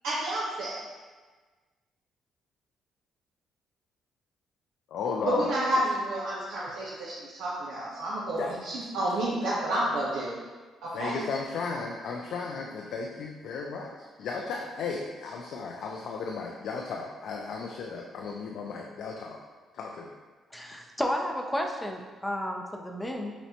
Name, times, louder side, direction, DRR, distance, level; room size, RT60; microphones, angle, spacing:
voice 1, 0.0-0.8 5.2-10.3 11.0-11.2, right 1 dB, 90° right, -7 dB, 0.6 m, -30 dB
voice 2, 4.9-5.5 8.4-8.5 10.9-13.9 14.2-19.4 19.7-20.1, left 4 dB, 75° left, 0 dB, 0.3 m, -34 dB
voice 3, 20.5-23.3, equal, 10° left, 2 dB, 0.5 m, -32 dB
5.7 x 2.1 x 2.8 m, 1.4 s
cardioid pair, 90°, 0 cm